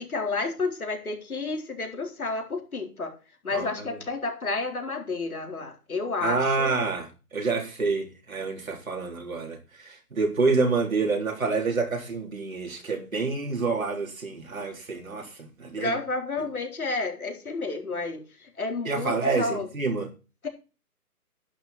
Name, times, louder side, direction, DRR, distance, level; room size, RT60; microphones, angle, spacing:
voice 1, 0.0-3.1 3.4-6.7 15.8-19.7 20.4-20.5, left 3 dB, 65° left, 4.2 m, -31 dB
voice 2, 3.5-4.0 6.2-16.0 18.8-20.1, right 4 dB, 60° right, 3.8 m, -28 dB
11.5 x 9.8 x 4.3 m
hypercardioid pair, 180°, 46 cm